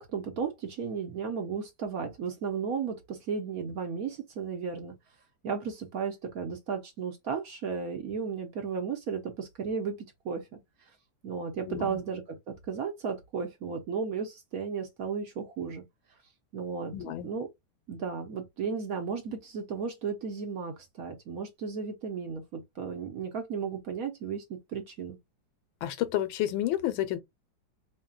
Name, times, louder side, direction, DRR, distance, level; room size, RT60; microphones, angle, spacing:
voice 1, 0.0-5.0 5.4-10.0 10.2-10.6 11.2-15.8 16.5-17.5 17.9-25.2, right 6 dB, 60° right, 1.0 m, -34 dB
voice 2, 11.7-12.0 16.9-17.3 25.8-27.2, left 13 dB, 90° left, 1.4 m, -30 dB
4.2 x 3.3 x 2.3 m
omnidirectional pair, 2.1 m